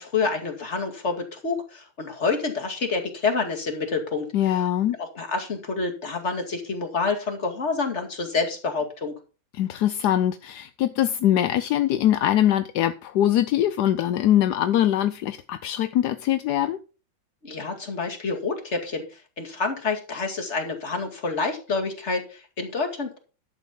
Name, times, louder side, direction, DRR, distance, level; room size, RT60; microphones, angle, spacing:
voice 1, 0.0-4.6 5.0-9.1 17.4-23.2, left 4 dB, 35° left, 2 dB, 2.5 m, -28 dB
voice 2, 4.3-5.0 9.5-16.8, left 11 dB, 65° left, 11 dB, 1.0 m, -22 dB
11.5 x 7.4 x 5.3 m, 0.34 s
omnidirectional pair, 2.3 m